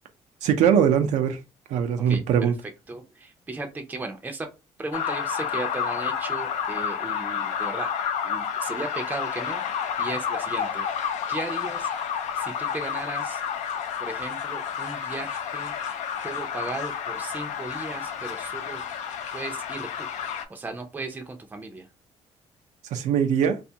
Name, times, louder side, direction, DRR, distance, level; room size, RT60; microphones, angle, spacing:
voice 1, 0.4-1.4 1.7-2.5 22.9-23.6, right 8 dB, 85° right, 0.4 m, -21 dB
voice 2, 2.6-4.5 4.8-7.9 8.2-9.6 10.0-10.9 11.3-11.9 12.3-13.4 14.0-18.8 19.3-20.1 20.5-21.9, right 2 dB, 15° right, 0.4 m, -36 dB
sound 1, 4.9-20.4, left 7 dB, 80° left, 0.4 m, -30 dB
2.5 x 2.3 x 2.7 m
cardioid pair, 115°, 12 cm